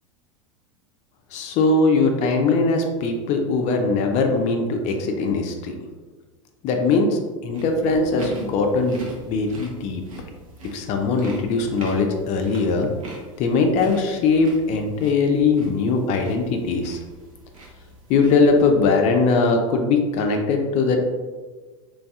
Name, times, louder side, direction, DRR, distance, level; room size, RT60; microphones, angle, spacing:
voice 1, 1.3-5.8 6.6-9.0 9.3-10.0 10.7-12.9 13.4-17.0 18.1-21.1, left 4 dB, 40° left, 3 dB, 0.5 m, -20 dB
sound 1, 7.5-18.8, right 3 dB, 75° right, 0.8 m, -41 dB
3.1 x 2.7 x 2.3 m, 1.4 s
hypercardioid pair, 90°, 17 cm